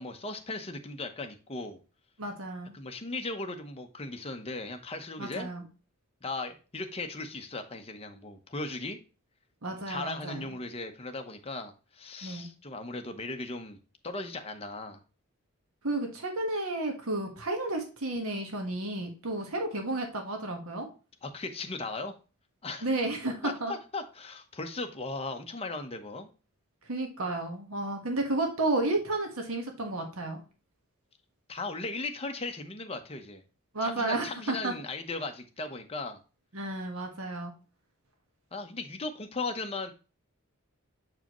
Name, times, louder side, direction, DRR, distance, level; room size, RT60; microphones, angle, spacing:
voice 1, 0.0-1.8 2.7-5.5 6.2-9.0 9.9-13.8 14.0-15.0 21.2-22.1 22.6-22.9 23.4-26.3 31.5-33.4 33.8-36.2 38.5-39.9, left 3 dB, 30° left, 0.8 m, -37 dB
voice 2, 2.2-2.7 5.2-5.6 9.6-10.6 12.2-12.5 15.8-20.9 22.8-23.7 26.9-30.4 33.7-34.7 36.5-37.5, right 2 dB, 75° right, 1.4 m, -32 dB
7.2 x 4.7 x 3.0 m
head